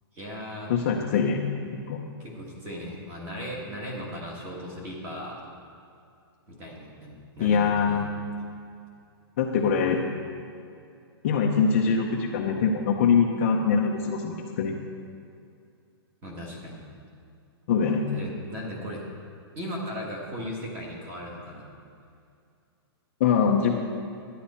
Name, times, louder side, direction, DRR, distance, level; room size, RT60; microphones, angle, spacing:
voice 1, 0.1-0.7 2.2-5.4 6.5-8.1 16.2-16.8 18.1-19.0 19.5-21.7, equal, 15° right, -2 dB, 1.6 m, -37 dB
voice 2, 0.7-1.4 1.7-2.0 7.4-8.1 9.4-10.0 11.2-14.7 17.7-18.1 23.2-23.7, left 6 dB, 30° left, 1 dB, 0.6 m, -23 dB
12.0 x 10.0 x 4.3 m, 2.4 s
hypercardioid pair, 175°, 13 cm